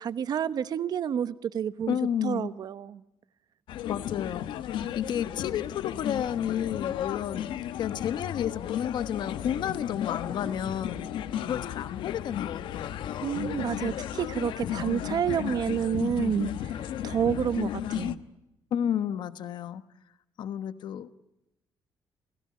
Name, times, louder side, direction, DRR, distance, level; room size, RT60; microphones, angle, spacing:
voice 1, 0.0-2.0 2.2-3.0 13.2-16.7 17.0-18.2, right 8 dB, 55° right, 14 dB, 1.1 m, -29 dB
voice 2, 1.9-2.5 3.9-4.5 4.9-7.5 7.8-11.0 11.4-13.4 18.7-19.8 20.4-21.2, left 9 dB, 70° left, 13 dB, 1.2 m, -31 dB
sound 1, 3.7-18.2, left 10 dB, 90° left, 1.1 m, -34 dB
29.5 x 17.0 x 9.7 m, 0.92 s
cardioid pair, 135°, 8 cm